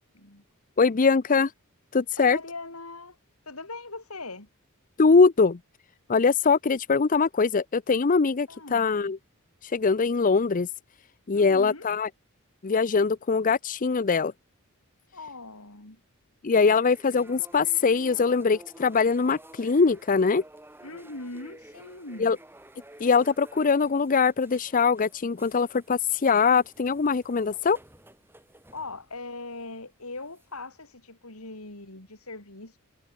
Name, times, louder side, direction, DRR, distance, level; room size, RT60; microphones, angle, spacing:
voice 1, 0.1-0.4 2.2-3.2 3.4-4.5 8.5-8.9 11.3-11.9 15.1-16.0 20.8-22.4 28.7-32.8, left 3 dB, 75° left, 5.1 m, -40 dB
voice 2, 0.8-1.5 1.9-2.4 5.0-5.6 6.1-9.2 9.6-10.7 11.3-12.1 12.6-14.3 16.4-20.4 22.2-22.4 23.0-27.8, left 5 dB, 40° left, 0.6 m, -22 dB
sound 1, 16.5-29.3 30.3-30.7, right 1 dB, 10° right, 4.4 m, -52 dB
head